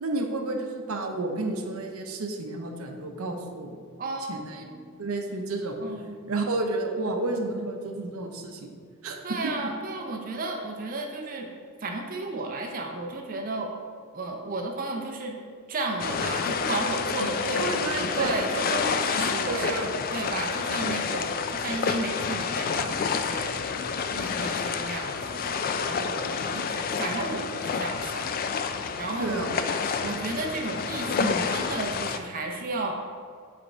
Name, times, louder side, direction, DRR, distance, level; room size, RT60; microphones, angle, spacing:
voice 1, 0.0-3.8 4.3-4.6 5.0-5.8 6.3-8.8 9.0-9.5 17.6-18.3 19.4-19.9 29.2-30.2, right 2 dB, 80° right, 3 dB, 0.7 m, -31 dB
voice 2, 4.0-4.9 5.8-6.4 9.2-11.5 11.8-13.7 14.1-15.4 15.7-28.2 28.6-29.4 30.0-32.9, right 2 dB, 40° right, 1 dB, 0.6 m, -33 dB
sound 1, 16.0-32.2, left 5 dB, 45° left, 0.3 m, -29 dB
7.8 x 3.5 x 4.3 m, 2.2 s
head